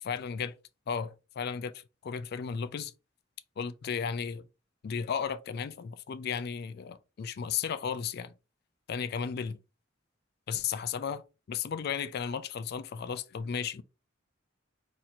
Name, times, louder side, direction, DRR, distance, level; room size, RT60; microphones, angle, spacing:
voice 1, 0.0-0.6 0.9-2.9 3.6-4.5 4.8-8.3 8.9-9.6 10.5-13.8, left 7 dB, 55° left, 0.3 m, -34 dB
2.9 x 2.6 x 4.1 m
head